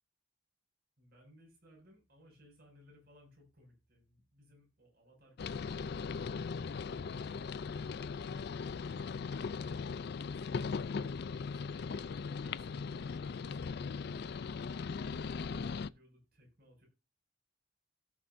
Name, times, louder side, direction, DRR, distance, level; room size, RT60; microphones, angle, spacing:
voice 1, 1.0-6.4 15.0-16.9, equal, 50° right, 0 dB, 6.0 m, -63 dB
sound 1, 5.4-15.9, left 5 dB, 50° left, 0.4 m, -39 dB
17.0 x 6.8 x 2.6 m, 0.30 s
head